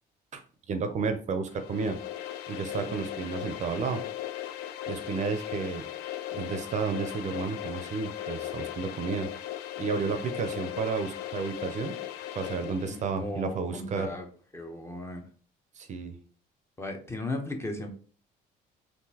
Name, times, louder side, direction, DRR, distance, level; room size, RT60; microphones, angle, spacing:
voice 1, 0.7-2.0 2.5-4.0 4.9-5.8 6.3-9.3 9.8-12.0 12.3-14.1 15.8-16.2, right 5 dB, 45° right, 8 dB, 0.5 m, -32 dB
sound 1, 1.5-13.1, left 12 dB, 75° left, 0.4 m, -38 dB
voice 2, 12.8-14.3 14.5-15.2 16.8-17.9, left 1 dB, 15° left, 3 dB, 0.7 m, -36 dB
3.7 x 2.5 x 2.8 m, 0.42 s
cardioid pair, 110°, 17 cm